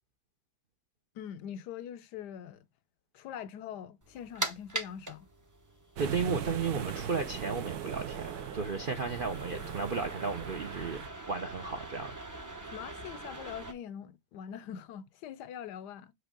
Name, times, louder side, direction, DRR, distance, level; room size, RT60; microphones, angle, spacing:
voice 1, 1.1-2.7 3.1-5.3 12.7-16.1, left 9 dB, 80° left, 1.2 m, -43 dB
sound 1, 4.0-13.7, right 2 dB, 15° right, 0.6 m, -43 dB
voice 2, 6.0-11.0 11.3-12.2, right 4 dB, 55° right, 0.6 m, -34 dB
sound 2, 6.0-11.1, right 8 dB, 70° right, 1.3 m, -40 dB
8.0 x 3.1 x 5.1 m
omnidirectional pair, 1.8 m